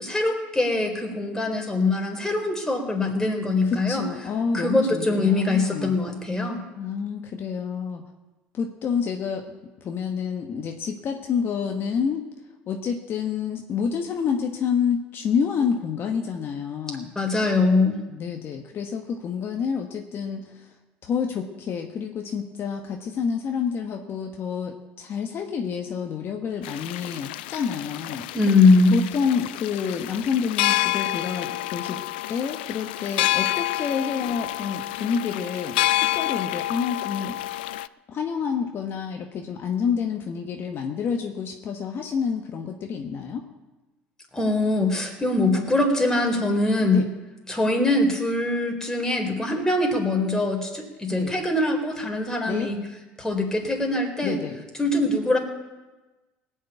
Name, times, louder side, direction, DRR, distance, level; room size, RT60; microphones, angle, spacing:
voice 1, 0.0-4.0 4.5-6.6 17.2-18.0 28.3-29.0 44.3-47.0 47.5-52.8 53.2-54.4 54.8-55.4, left 2 dB, 10° left, 2 dB, 4.3 m, -22 dB
voice 2, 3.6-6.0 6.7-8.0 8.5-9.5 9.8-12.2 12.7-17.1 18.1-20.7 21.0-28.2 28.9-32.0 32.3-37.7 38.1-43.4 46.8-47.1 51.1-51.3 52.4-52.7 54.2-54.6, left 6 dB, 50° left, 3 dB, 1.6 m, -28 dB
sound 1, 26.6-37.9, left 16 dB, 85° left, 0.4 m, -28 dB
18.5 x 6.5 x 9.4 m, 1.1 s
supercardioid pair, 80°, 5 cm